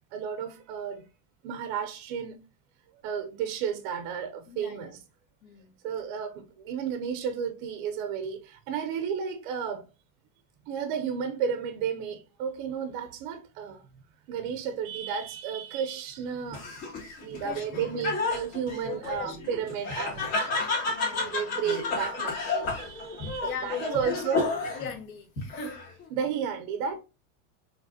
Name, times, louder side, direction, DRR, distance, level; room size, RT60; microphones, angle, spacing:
voice 1, 0.1-1.1 1.4-2.4 3.0-5.0 5.8-9.8 10.7-13.8 14.3-16.7 17.2-20.6 21.1-24.5 26.1-27.0, right 7 dB, 45° right, 0.4 m, -33 dB
voice 2, 4.5-5.0 5.4-5.7 17.4-18.2 18.8-19.4 20.9-21.5 23.4-24.2 24.6-25.8, left 6 dB, 85° left, 1.3 m, -39 dB
Laughter, 16.5-24.9 25.4-26.0, left 3 dB, 70° left, 2.1 m, -31 dB
4.8 x 3.3 x 2.6 m
supercardioid pair, 165°, 41 cm